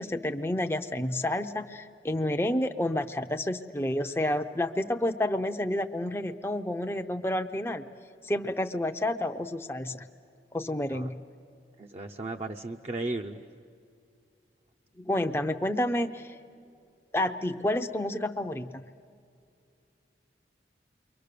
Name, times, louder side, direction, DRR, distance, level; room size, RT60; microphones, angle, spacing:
voice 1, 0.0-7.8 8.2-10.0 10.5-11.1 15.0-16.3 17.1-18.8, left 1 dB, 15° left, 5 dB, 0.6 m, -30 dB
voice 2, 11.8-13.4, right 2 dB, 35° right, 2 dB, 0.6 m, -35 dB
29.5 x 23.0 x 6.8 m, 2.4 s
head